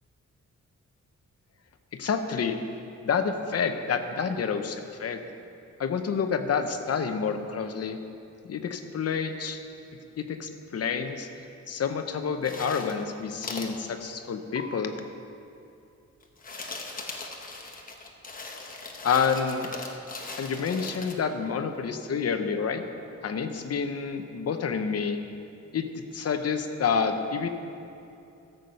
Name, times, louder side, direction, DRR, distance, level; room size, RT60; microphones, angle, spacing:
voice 1, 1.9-2.6 3.0-5.2 5.8-8.0 8.4-9.6 10.2-11.3 11.7-14.9 19.0-19.7 20.4-22.8 23.2-25.2 25.7-27.5, left 6 dB, 55° left, 7 dB, 0.8 m, -28 dB
Ice in bucket, 12.4-13.1 13.4-13.7 14.6-14.7 16.2-21.1, left 3 dB, 30° left, 1.0 m, -39 dB
13.5 x 8.0 x 5.5 m, 2.7 s
wide cardioid pair, 165°, 29 cm